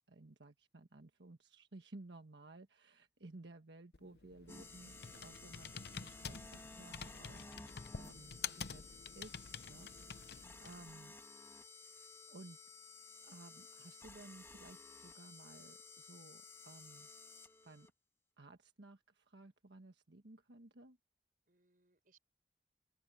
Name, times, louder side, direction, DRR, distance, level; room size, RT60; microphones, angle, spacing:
voice 1, 0.1-11.1 11.7-12.6 13.2-17.1 17.6-17.9 18.4-21.0, right 2 dB, 80° right, 1.4 m, -57 dB
Computer keyboard, 3.9-10.9, left 6 dB, 65° left, 0.8 m, -48 dB
sound 1, 4.5-17.9, left 3 dB, 15° left, 2.0 m, -55 dB
voice 2, 21.5-22.2, right 4 dB, 50° right, 6.0 m, -74 dB
open air
head